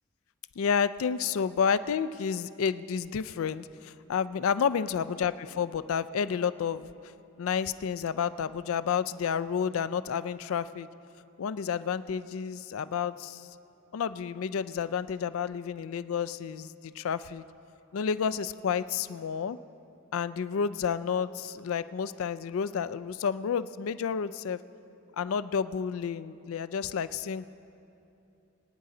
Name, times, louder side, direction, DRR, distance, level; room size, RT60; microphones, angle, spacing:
voice 1, 0.6-6.9 7.4-10.9 11.4-13.5 13.9-17.4 17.9-19.6 20.1-24.6 25.2-27.5, left 7 dB, 70° left, 14 dB, 0.4 m, -30 dB
23.0 x 9.3 x 3.8 m, 2.8 s
head